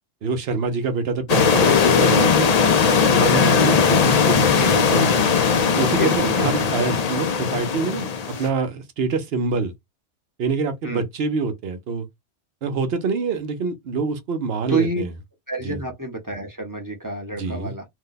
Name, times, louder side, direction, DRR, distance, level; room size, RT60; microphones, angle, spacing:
voice 1, 0.2-2.6 3.1-5.1 5.8-8.1 8.4-9.7 10.4-12.1 12.6-15.1 15.6-15.8 17.3-17.7, right 4 dB, 60° right, 0.9 m, -25 dB
sound 1, 1.3-8.5, left 6 dB, 55° left, 0.4 m, -18 dB
voice 2, 4.5-4.8 5.9-6.7 10.8-11.0 14.7-15.0 15.5-17.8, right 2 dB, 20° right, 0.6 m, -28 dB
2.7 x 2.2 x 3.8 m
omnidirectional pair, 1.3 m